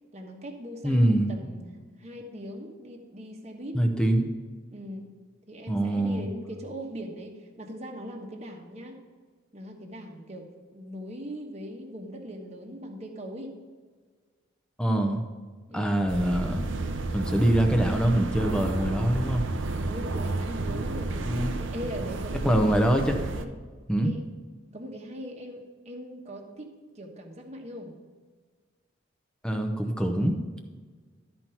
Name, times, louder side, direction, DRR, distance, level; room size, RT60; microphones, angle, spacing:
voice 1, 0.1-1.7 2.0-3.8 4.7-5.1 5.5-9.0 9.5-10.5 10.7-13.5 15.7-16.1 19.7-22.8 23.3-23.5 24.0-24.2 24.7-28.0, equal, 35° right, 1 dB, 1.2 m, -40 dB
voice 2, 0.8-1.3 3.7-4.3 5.7-6.2 14.8-15.2 15.7-16.6 17.1-19.5 21.2-21.5 22.4-23.2 23.9-24.1 29.4-30.3, right 1 dB, 5° left, 4 dB, 0.8 m, -24 dB
sound 1, 16.1-23.4, right 2 dB, 80° right, 0.7 m, -31 dB
12.5 x 4.5 x 5.6 m, 1.5 s
head